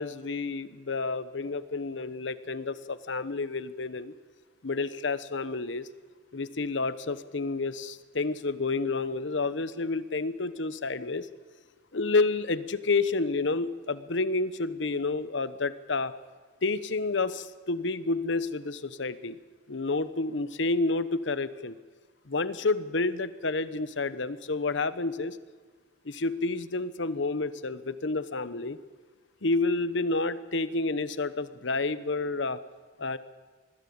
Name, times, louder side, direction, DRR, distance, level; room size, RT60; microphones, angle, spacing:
voice 1, 0.0-4.1 4.6-5.9 6.3-11.3 11.9-16.1 16.6-19.4 19.7-21.8 22.3-25.4 26.0-28.8 29.4-32.6 33.0-33.2, left 3 dB, 75° left, 14 dB, 1.0 m, -29 dB
20.5 x 14.5 x 8.7 m, 1.4 s
head